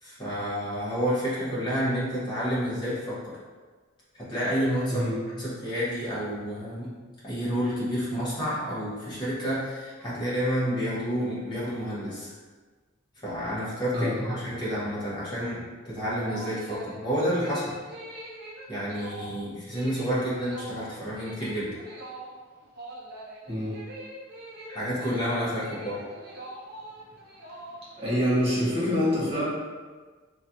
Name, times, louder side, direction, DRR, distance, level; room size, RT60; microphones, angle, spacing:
voice 1, 0.0-3.3 4.1-5.1 5.3-6.9 7.2-12.3 13.2-15.6 15.8-17.6 18.7-21.7 24.7-26.0, equal, 25° left, -9 dB, 1.0 m, -29 dB
voice 2, 13.9-14.4 23.5-23.8 28.0-29.4, equal, 30° right, -9 dB, 1.3 m, -26 dB
sound 1, 16.2-28.1, right 1 dB, 50° right, 0.5 m, -43 dB
3.1 x 2.4 x 2.7 m, 1.4 s
head